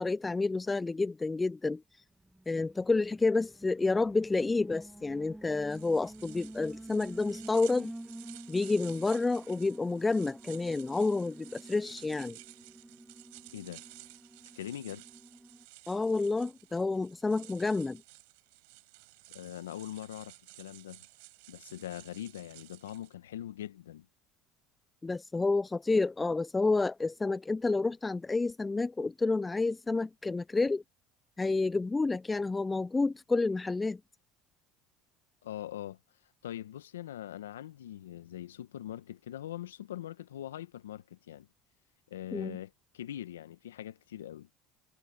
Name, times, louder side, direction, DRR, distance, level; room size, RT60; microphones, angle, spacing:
voice 1, 0.0-2.0 2.5-7.9 8.5-12.4 15.9-18.0 25.0-30.8 31.4-34.0 42.3-42.6, left 3 dB, 20° left, 0.3 m, -29 dB
Alarm, 2.2-15.6, right 1 dB, 5° right, 1.5 m, -49 dB
sound 1, 5.7-23.1, right 30 dB, 75° right, 6.3 m, -54 dB
voice 2, 13.5-13.8 14.6-15.0 19.3-21.1 21.5-24.1 35.4-36.0 36.4-41.5 42.1-44.5, left 12 dB, 90° left, 1.2 m, -42 dB
hypercardioid pair, 75°, 0 cm